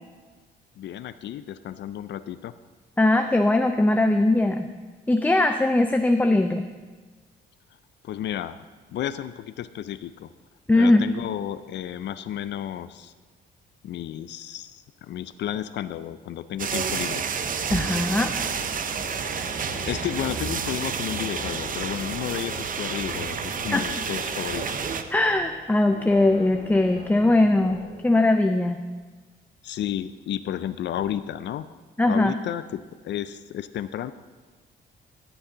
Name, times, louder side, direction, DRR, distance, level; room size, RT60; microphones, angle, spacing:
voice 1, 0.8-2.5 8.0-8.6 8.9-10.3 10.8-13.1 13.8-17.2 19.9-24.6 29.6-31.7 32.1-34.1, left 11 dB, 65° left, 13 dB, 0.4 m, -32 dB
voice 2, 3.0-4.7 5.1-6.7 10.7-11.0 17.7-18.3 23.7-23.9 25.1-27.8 28.0-28.8 32.0-32.3, left 2 dB, 10° left, 6 dB, 0.5 m, -20 dB
sound 1, 16.6-25.0, right 6 dB, 45° right, 0.7 m, -30 dB
sound 2, 17.6-28.0, left 3 dB, 40° left, 1.5 m, -43 dB
16.0 x 7.0 x 3.9 m, 1.4 s
cardioid pair, 90°, 20 cm